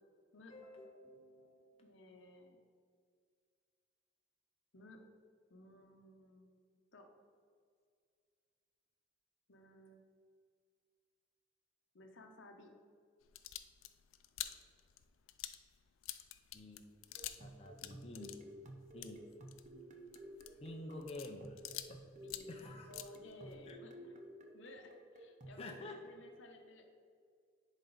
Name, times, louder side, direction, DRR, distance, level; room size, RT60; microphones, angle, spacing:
voice 1, 0.5-1.9 16.5-16.9 17.4-18.4 18.9-19.2 20.6-21.6 21.9-22.0 22.5-22.9 23.7-23.8 25.5-26.0, left 1 dB, 30° left, 1 dB, 0.6 m, -49 dB
voice 2, 1.8-2.6 4.7-5.0 5.5-6.5 6.9-7.1 9.5-10.0 11.9-12.7 22.2-24.2 24.5-26.9, left 1 dB, 65° left, 4 dB, 0.8 m, -57 dB
sound 1, 13.2-17.5 17.8-22.0 22.2-23.7, left 13 dB, 90° left, 0.4 m, -48 dB
sound 2, 17.2-25.7, right 1 dB, 40° right, 0.6 m, -54 dB
10.0 x 4.1 x 3.9 m, 2.1 s
head